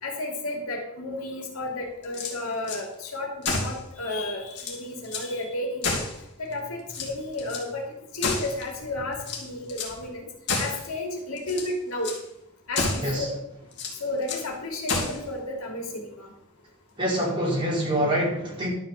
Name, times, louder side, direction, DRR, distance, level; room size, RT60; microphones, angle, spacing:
voice 1, 0.0-6.0 6.4-10.2 10.6-12.1 12.7-13.3 14.0-16.3, left 2 dB, 70° left, 1 dB, 2.8 m, -32 dB
sound 1, 2.0-2.8 3.4-3.8 4.2-4.3 4.5-5.3 5.8-6.5 6.9-7.7 8.2-8.8 9.2-10.0 10.5-10.9 11.4-11.7 12.0-12.2 12.7-13.1 13.7-14.5 14.9-15.2, left 3 dB, 50° left, 2.7 m, -30 dB
voice 2, 17.0-18.7, equal, 20° right, -5 dB, 4.3 m, -25 dB
12.0 x 6.0 x 7.0 m, 0.82 s
head